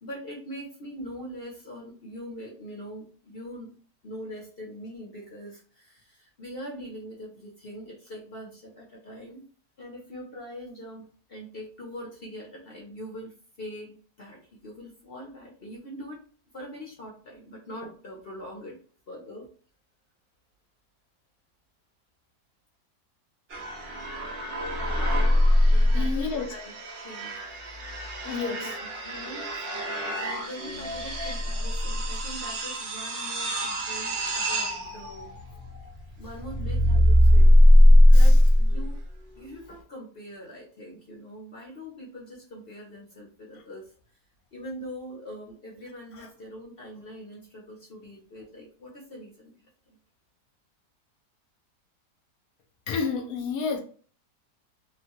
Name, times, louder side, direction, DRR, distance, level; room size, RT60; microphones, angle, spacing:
voice 1, 0.0-3.7 4.0-9.4 9.8-16.2 16.5-18.8 19.1-19.5 25.7-26.7 27.0-27.4 28.2-29.5 30.2-35.3 36.2-37.5 38.1-39.0 39.4-43.9 44.5-50.0, equal, 50° left, -2 dB, 0.7 m, -42 dB
sound 1, 23.5-39.0, left 1 dB, 55° right, 0.7 m, -21 dB
voice 2, 25.9-26.5 28.2-28.7 38.1-38.3 46.2-46.3 52.9-53.8, left 5 dB, 70° left, 3 dB, 1.1 m, -30 dB
3.0 x 2.1 x 2.8 m, 0.42 s
omnidirectional pair, 1.8 m